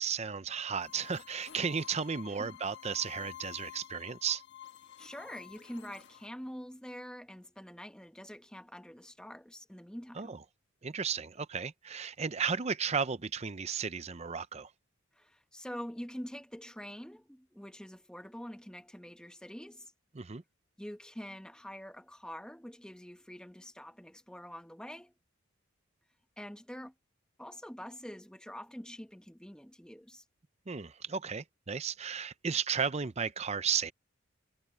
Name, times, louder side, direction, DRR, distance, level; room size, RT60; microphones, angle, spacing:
voice 1, 0.0-4.4 10.2-10.4 10.8-14.7 20.1-20.4 30.7-33.9, right 6 dB, 30° right, 0.6 m, -34 dB
sound 1, 0.8-6.3, left 11 dB, 55° left, 1.5 m, -50 dB
voice 2, 5.0-10.3 15.1-19.9 20.8-25.1 26.4-26.9 27.4-30.2, equal, 5° left, 1.2 m, -45 dB
head